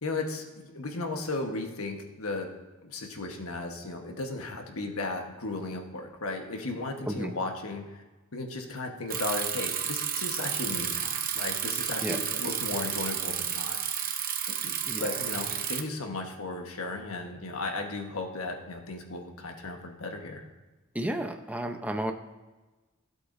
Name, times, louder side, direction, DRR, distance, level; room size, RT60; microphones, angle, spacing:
voice 1, 0.0-2.5 2.8-8.0 8.3-13.8 14.6-14.7 15.0-20.4, left 2 dB, 85° left, 3 dB, 1.3 m, -35 dB
Bicycle, 9.1-15.8, right 9 dB, 45° right, 0.8 m, -31 dB
voice 2, 20.9-22.1, right 1 dB, 5° right, 5 dB, 0.7 m, -32 dB
15.5 x 8.1 x 2.7 m, 1.2 s
head